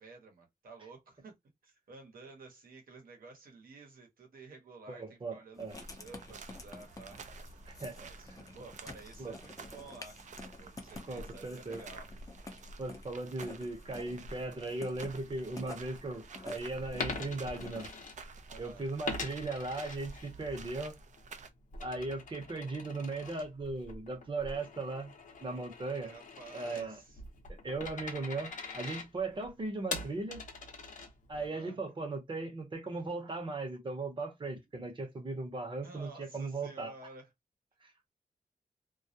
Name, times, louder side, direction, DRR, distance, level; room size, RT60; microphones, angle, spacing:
voice 1, 0.0-1.3 1.6-7.6 7.9-10.2 10.6-12.1 18.5-18.9 26.0-27.2 31.3-31.8 35.8-37.3, right 3 dB, 85° right, 0.9 m, -52 dB
voice 2, 4.9-5.7 7.7-8.0 8.3-8.5 9.2-9.3 11.1-11.8 12.8-17.9 18.6-21.0 21.8-25.1 25.4-26.2 26.5-27.0 27.5-30.5 31.3-36.9 37.8-38.1, right 3 dB, 35° right, 0.8 m, -38 dB
Writing, 5.5-18.1, left 2 dB, 25° left, 0.5 m, -50 dB
sound 1, 5.7-21.5, right 3 dB, 60° right, 0.4 m, -50 dB
Coin (dropping), 16.9-18.6 19.0-20.6 21.0-31.5, left 3 dB, 60° left, 0.7 m, -43 dB
2.3 x 2.0 x 2.7 m
wide cardioid pair, 145°, 14 cm